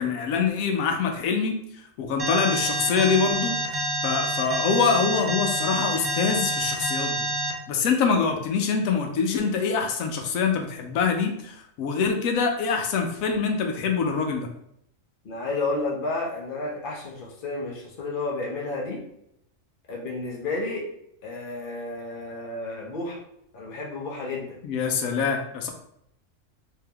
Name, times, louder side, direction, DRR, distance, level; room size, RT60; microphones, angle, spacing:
voice 1, 0.0-1.6 2.0-7.3 7.7-14.5 24.6-25.7, left 5 dB, 90° left, 4 dB, 1.0 m, -25 dB
Alarm, 2.2-7.5, right 1 dB, 45° right, 0.8 m, -27 dB
voice 2, 15.2-19.0 19.9-20.9 21.2-23.2 23.5-24.6, left 2 dB, 45° left, -1 dB, 0.9 m, -31 dB
3.4 x 2.7 x 3.4 m, 0.75 s
omnidirectional pair, 1.4 m